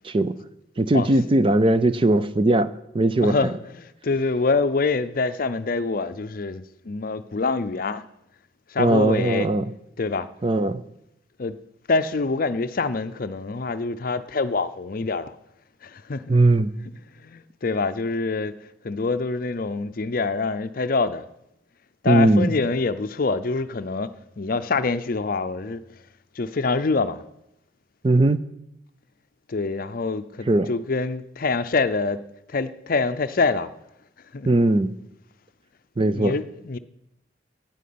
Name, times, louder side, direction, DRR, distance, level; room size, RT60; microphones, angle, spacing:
voice 1, 0.8-3.4 8.8-9.6 10.4-10.8 16.3-16.7 22.1-22.5 28.0-28.4 30.5-30.7 34.5-34.9 36.0-36.4, right 2 dB, 30° right, 0.5 m, -19 dB
voice 2, 3.2-8.1 8.7-9.5 10.0-10.3 11.4-11.6 11.9-15.3 15.8-16.4 17.1-21.3 22.0-25.8 26.3-27.2 29.5-32.2 32.5-33.7 34.3-34.5 36.0-36.8, left 3 dB, 50° left, 0.5 m, -25 dB
9.3 x 9.3 x 8.5 m
head